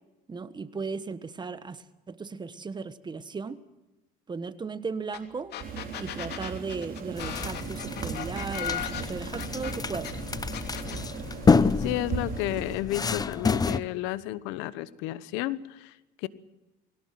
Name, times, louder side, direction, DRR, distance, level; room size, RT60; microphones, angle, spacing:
voice 1, 0.3-3.6 4.3-5.5 6.0-10.2, right 4 dB, 25° right, 14 dB, 1.3 m, -36 dB
sound 1, 5.1-5.2 5.5-10.1 10.5-11.0, left 10 dB, 60° left, 3.0 m, -36 dB
sound 2, 5.6-12.8, right 6 dB, 50° right, 3.7 m, -38 dB
sound 3, 7.2-13.8, left 4 dB, 20° left, 0.8 m, -28 dB
voice 2, 11.8-16.3, left 15 dB, 85° left, 17 dB, 1.1 m, -32 dB
22.0 x 18.0 x 7.7 m, 1.0 s
cardioid pair, 110°, 19 cm